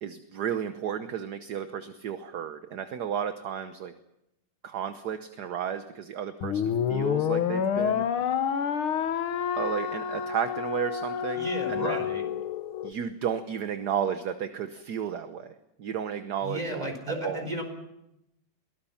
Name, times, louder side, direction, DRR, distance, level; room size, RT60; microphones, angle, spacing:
voice 1, 0.0-3.9 4.6-6.6 6.9-8.0 9.5-12.0 12.8-15.5 15.8-17.5, right 8 dB, 55° right, 10 dB, 1.4 m, -33 dB
sound 1, 6.4-12.9, left 8 dB, 75° left, 2.0 m, -28 dB
voice 2, 11.3-12.2 16.4-17.6, equal, 15° right, 5 dB, 4.8 m, -34 dB
23.0 x 18.5 x 7.2 m, 0.85 s
omnidirectional pair, 2.4 m